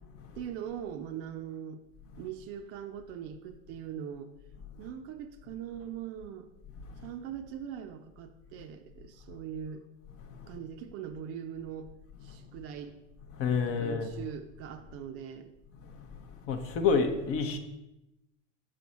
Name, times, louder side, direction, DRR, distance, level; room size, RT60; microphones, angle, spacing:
voice 1, 0.4-1.8 2.2-4.3 4.8-6.5 7.0-9.9 10.5-11.9 12.2-13.0 13.7-15.5, right 8 dB, 40° right, 0.5 m, -41 dB
voice 2, 13.4-14.1 15.9-16.1 16.5-17.6, left 5 dB, 35° left, 0.7 m, -28 dB
6.3 x 4.6 x 4.1 m
hypercardioid pair, 115°, 38 cm